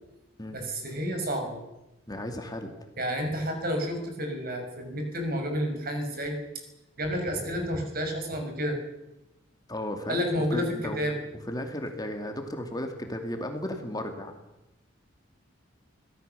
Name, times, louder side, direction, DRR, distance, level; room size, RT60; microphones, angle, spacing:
voice 1, 0.5-1.6 3.0-6.4 7.0-8.8 10.1-11.2, equal, 50° right, 4 dB, 5.8 m, -30 dB
voice 2, 2.1-2.7 9.7-11.0 11.5-14.4, left 1 dB, 20° left, 4 dB, 2.4 m, -34 dB
24.5 x 17.0 x 6.9 m, 0.93 s
head